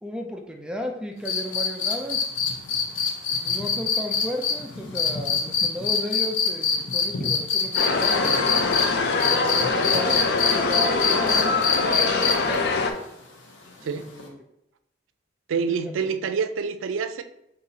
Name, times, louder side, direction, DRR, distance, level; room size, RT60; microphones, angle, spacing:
voice 1, 0.0-2.3 3.3-8.4 9.1-12.7 13.8-14.4 15.7-16.1, left 1 dB, 5° right, 3 dB, 0.3 m, -34 dB
sound 1, 1.3-8.9 9.2-12.6 14.2-14.3, left 6 dB, 80° left, 0.8 m, -23 dB
sound 2, 7.7-12.9, left 3 dB, 60° left, 0.5 m, -23 dB
voice 2, 15.5-17.2, right 5 dB, 90° right, 10 dB, 0.4 m, -27 dB
5.5 x 2.7 x 2.8 m, 0.82 s
head